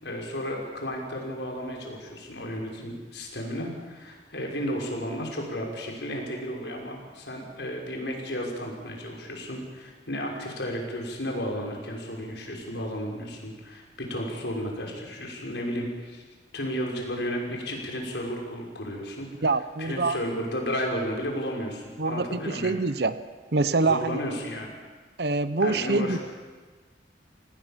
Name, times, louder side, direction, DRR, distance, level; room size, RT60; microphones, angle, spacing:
voice 1, 0.0-16.2 16.5-19.3 19.8-22.7 23.8-24.7 25.6-26.2, equal, 75° left, 0 dB, 5.9 m, -33 dB
voice 2, 19.4-20.2 22.0-23.2 23.5-24.2 25.2-26.2, right 3 dB, 65° right, 13 dB, 0.9 m, -25 dB
27.5 x 18.5 x 7.5 m, 1.4 s
head